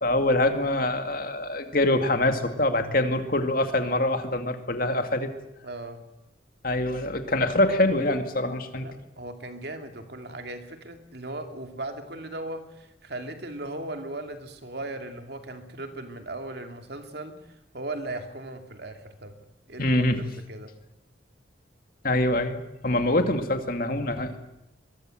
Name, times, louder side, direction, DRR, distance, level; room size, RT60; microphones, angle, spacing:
voice 1, 0.0-5.3 6.6-8.9 19.8-20.3 22.0-24.4, left 1 dB, 45° left, 7 dB, 2.3 m, -24 dB
voice 2, 5.6-6.0 8.8-19.4 19.7-20.0 20.5-20.7, right 2 dB, 55° right, 6 dB, 2.6 m, -37 dB
23.0 x 22.5 x 7.8 m, 0.86 s
head